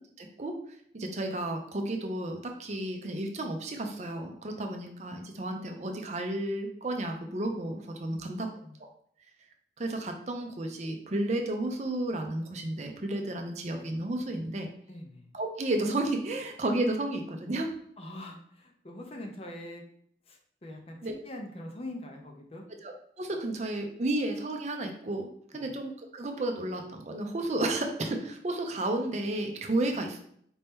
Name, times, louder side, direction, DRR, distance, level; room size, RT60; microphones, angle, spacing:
voice 1, 0.2-0.5 0.9-8.5 8.8-8.9 9.8-14.7 15.3-17.7 21.0-21.1 22.8-30.2, right 1 dB, 40° right, 4 dB, 0.5 m, -32 dB
voice 2, 14.9-15.3 18.0-19.8 20.3-22.6 25.5-25.7, left 1 dB, 30° left, 2 dB, 0.6 m, -43 dB
4.3 x 2.8 x 3.5 m, 0.65 s
head